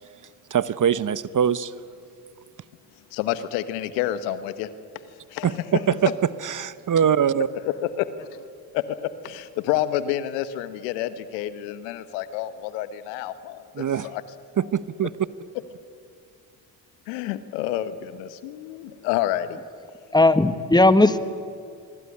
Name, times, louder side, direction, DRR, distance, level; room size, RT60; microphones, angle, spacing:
voice 1, 0.5-1.7 5.4-6.1 6.4-7.5 13.7-14.1 14.6-15.1, right 8 dB, 40° right, 17 dB, 1.0 m, -22 dB
voice 2, 3.1-4.7 5.3-5.8 7.6-8.3 8.7-14.2 17.1-19.6, left 12 dB, 80° left, 13 dB, 1.3 m, -29 dB
voice 3, 20.1-21.2, left 2 dB, 10° left, 12 dB, 1.6 m, -16 dB
25.0 x 22.0 x 9.9 m, 2.3 s
hypercardioid pair, 55°, 49 cm